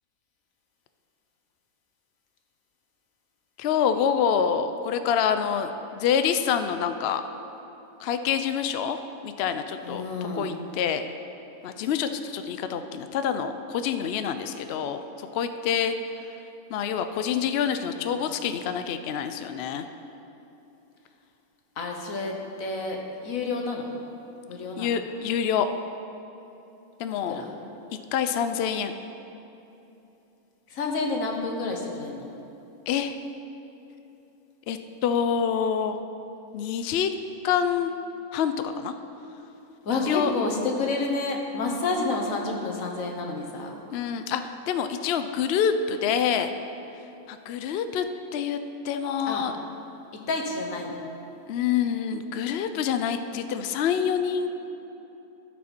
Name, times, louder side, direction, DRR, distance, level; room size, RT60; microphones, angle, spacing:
voice 1, 3.6-7.2 8.0-9.0 9.2-10.0 10.3-11.0 11.6-15.9 16.7-19.9 24.8-25.7 27.0-27.4 28.1-28.9 32.9-33.1 34.7-36.0 36.5-37.1 37.4-37.9 38.3-38.9 40.0-40.3 43.9-46.5 47.3-48.1 48.3-48.6 48.8-49.5 51.5-54.5, left 8 dB, 80° left, 9 dB, 0.5 m, -26 dB
voice 2, 9.8-10.5 18.0-18.2 21.8-22.3 22.6-23.0 23.2-23.9 24.5-24.9 27.3-27.5 30.7-32.3 39.8-43.7 49.3-49.5 50.3-51.0, left 3 dB, 65° left, 1 dB, 1.5 m, -29 dB
14.5 x 6.3 x 4.4 m, 2.9 s
omnidirectional pair, 1.6 m